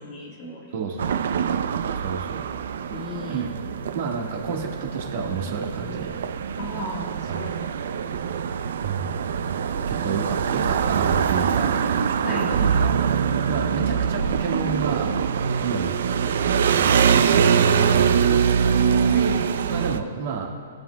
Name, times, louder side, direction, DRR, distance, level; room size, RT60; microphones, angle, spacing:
voice 1, 0.0-0.7 2.9-3.4 6.6-7.5 8.0-8.2 9.7-10.1 12.2-12.6 19.1-19.5, equal, 25° left, -1 dB, 1.6 m, -34 dB
sound 1, 1.0-20.0, right 7 dB, 65° right, 0.5 m, -23 dB
voice 2, 1.9-2.5 3.2-3.5 3.9-6.1 7.3-7.4 8.8-9.1 9.9-11.7 12.6-13.0 13.5-15.1 15.6-15.9 16.6-18.4 19.7-20.5, right 6 dB, 45° right, 0 dB, 1.5 m, -30 dB
21.5 x 7.6 x 2.3 m, 2.2 s
hypercardioid pair, 175°, 0 cm